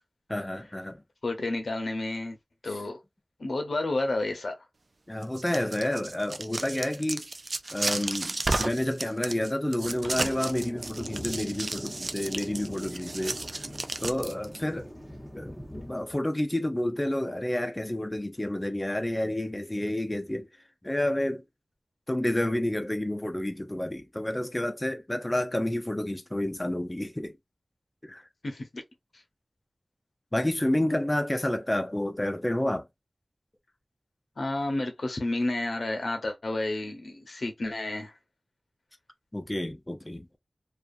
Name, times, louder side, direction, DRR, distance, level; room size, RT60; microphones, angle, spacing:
voice 1, 0.3-1.0 5.1-7.3 7.7-13.4 14.0-14.9 15.3-20.5 20.8-21.4 22.1-27.3 28.0-28.2 30.3-32.9 39.3-40.3, left 1 dB, 20° left, 0.5 m, -29 dB
voice 2, 1.2-2.4 2.6-3.0 3.4-4.6 28.4-28.8 29.1-29.2 34.4-38.1, left 2 dB, 80° left, 0.7 m, -31 dB
sound 1, 5.2-14.6, right 2 dB, 60° right, 0.3 m, -33 dB
Thunder, 9.8-16.2, equal, 5° right, 1.0 m, -43 dB
2.4 x 2.4 x 2.5 m
wide cardioid pair, 55°, 0 cm